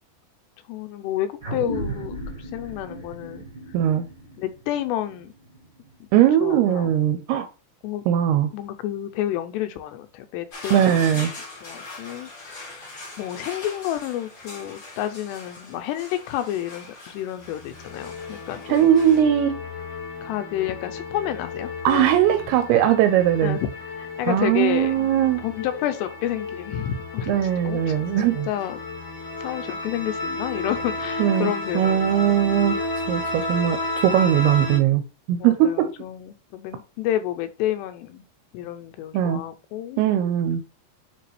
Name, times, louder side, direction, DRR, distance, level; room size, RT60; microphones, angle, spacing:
voice 1, 0.7-3.5 4.4-5.3 6.0-6.1 6.4-6.9 7.8-8.0 8.5-11.0 11.6-12.9 13.2-18.8 20.2-22.2 22.6-22.7 23.4-23.7 24.0-25.1 25.4-27.4 27.6-27.9 28.2-28.8 29.4-32.4 35.4-38.2 38.5-40.0, left 12 dB, 80° left, 2.7 m, -30 dB
sound 1, 1.4-6.3, right 2 dB, 40° right, 0.9 m, -36 dB
voice 2, 3.7-4.0 6.1-7.5 8.1-8.5 10.7-11.3 18.7-19.5 21.8-23.6 24.3-25.4 27.3-28.5 31.2-35.0 35.3-35.9 39.1-39.4 40.0-40.6, right 10 dB, 85° right, 2.4 m, -20 dB
sound 2, 10.5-19.2, left 2 dB, 55° left, 0.9 m, -41 dB
sound 3, 17.4-34.8, left 2 dB, 10° right, 0.6 m, -33 dB
9.3 x 3.6 x 3.2 m
omnidirectional pair, 5.0 m